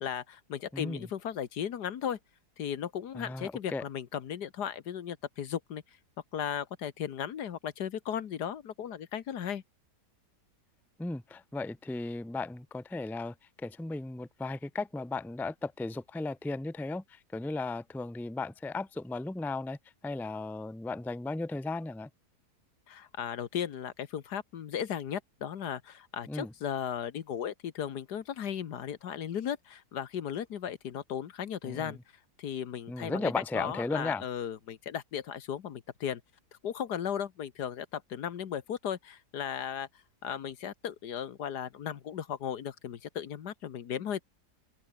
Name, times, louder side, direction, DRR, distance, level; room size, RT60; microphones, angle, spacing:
voice 1, 0.0-2.2 2.6-5.8 6.3-9.6 22.9-32.0 32.4-36.2 36.6-39.9 40.2-44.2, left 9 dB, 75° left, 1.7 m, -36 dB
voice 2, 0.7-1.1 3.1-3.8 11.0-19.8 20.0-22.1 26.3-26.5 31.6-31.9 32.9-34.2, left 3 dB, ahead, 0.7 m, -36 dB
open air
omnidirectional pair, 1.8 m